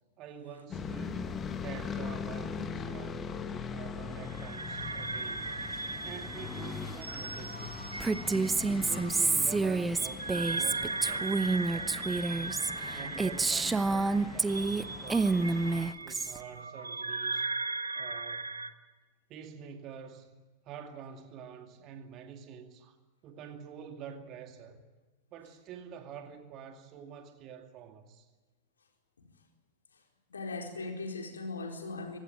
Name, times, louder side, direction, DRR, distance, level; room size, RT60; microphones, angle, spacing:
voice 1, 0.2-1.3 1.6-3.3 3.7-5.6 6.0-7.9 8.7-12.3 12.9-15.6 16.0-17.5 17.9-18.7 19.3-20.3 20.6-23.0 23.2-24.8 25.3-28.3, right 7 dB, 35° right, 2.4 m, -47 dB
sound 1, 0.7-15.9, left 5 dB, 25° left, 1.7 m, -41 dB
sound 2, 4.2-18.7, right 3 dB, 80° right, 1.0 m, -38 dB
Female speech woman speaking, 8.0-14.8 15.1-16.4, right 3 dB, 10° right, 0.9 m, -29 dB
voice 2, 8.8-9.6 12.0-12.2 29.2-29.3 29.9-30.0 30.3-32.2, left 3 dB, 70° left, 4.4 m, -41 dB
24.5 x 19.5 x 9.0 m
figure-of-eight pair, 90°, 0 cm